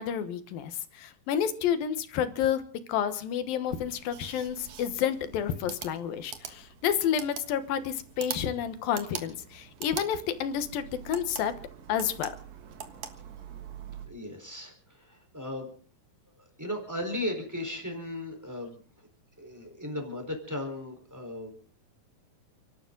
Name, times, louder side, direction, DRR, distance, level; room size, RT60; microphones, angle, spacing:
voice 1, 0.0-2.6 2.9-11.5 11.9-12.3, left 9 dB, 80° left, 11 dB, 3.0 m, -30 dB
sound 1, 3.7-14.1, right 8 dB, 60° right, 2.6 m, -43 dB
voice 2, 14.1-15.7 16.4-18.8 19.4-21.5, left 1 dB, 5° right, 4 dB, 3.9 m, -36 dB
29.5 x 12.0 x 3.9 m, 0.41 s
omnidirectional pair, 4.1 m